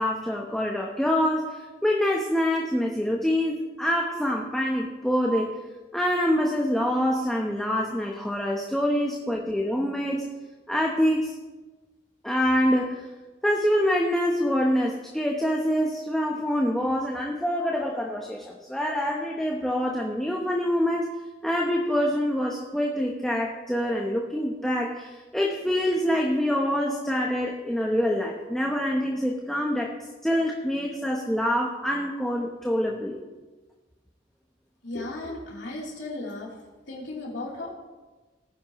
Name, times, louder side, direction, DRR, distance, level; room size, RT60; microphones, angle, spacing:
voice 1, 0.0-5.6 5.9-10.3 10.7-11.3 12.2-13.0 13.4-21.1 21.4-29.9 30.2-33.2, equal, ahead, -1 dB, 0.9 m, -25 dB
voice 2, 34.8-36.5 36.9-37.7, left 2 dB, 75° left, -4 dB, 3.4 m, -35 dB
18.5 x 10.5 x 3.1 m, 1.2 s
head